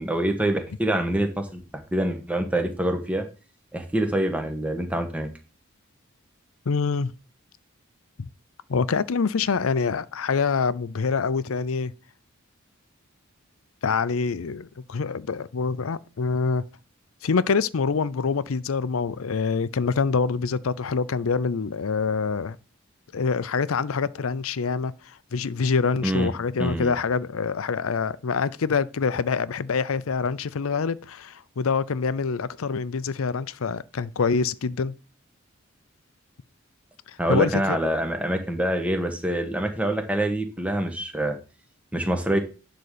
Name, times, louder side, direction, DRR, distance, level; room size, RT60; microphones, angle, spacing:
voice 1, 0.0-3.2 3.7-5.3 26.0-26.3 26.6-26.9 37.2-41.3 41.9-42.4, right 1 dB, 5° right, 1.5 m, -25 dB
voice 2, 6.7-7.1 8.2-8.3 8.7-11.9 13.8-16.6 17.2-22.6 23.1-34.9 37.1-37.9, left 5 dB, 85° left, 0.6 m, -25 dB
11.0 x 3.9 x 6.7 m
head